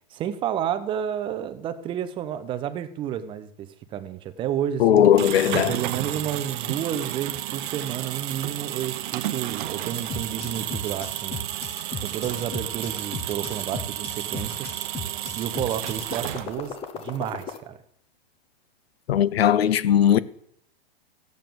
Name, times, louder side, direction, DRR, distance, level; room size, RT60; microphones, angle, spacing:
voice 1, 0.1-5.1 5.7-11.4 12.0-14.7 15.3-17.8, right 10 dB, 15° right, 0.7 m, -31 dB
voice 2, 4.8-5.7 19.1-20.2, left 10 dB, 80° left, 0.9 m, -18 dB
sound 1, 5.0-16.8, right 13 dB, 55° right, 0.9 m, -32 dB
sound 2, 9.9-17.6, left 4 dB, 20° left, 1.1 m, -36 dB
15.0 x 7.8 x 6.9 m
supercardioid pair, 160°, 30 cm